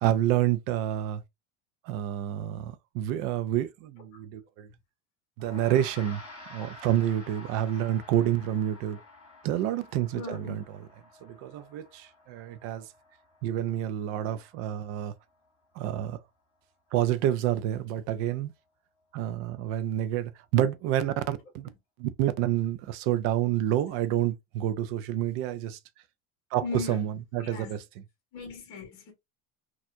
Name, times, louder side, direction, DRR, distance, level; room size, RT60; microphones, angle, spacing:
voice 1, 0.0-1.2 1.9-4.7 5.4-6.2 6.5-9.0 9.4-10.6 11.2-12.8 13.4-15.1 15.8-16.2 16.9-18.5 19.1-21.7 22.0-25.8 26.5-27.8, right 12 dB, 40° right, 0.4 m, -28 dB
Gong, 5.4-14.9, left 2 dB, 15° left, 2.0 m, -50 dB
voice 2, 10.1-10.6 26.6-27.1 27.4-27.8 28.3-29.1, left 4 dB, 40° left, 1.3 m, -38 dB
4.3 x 2.4 x 2.5 m
cardioid pair, 170°, 33 cm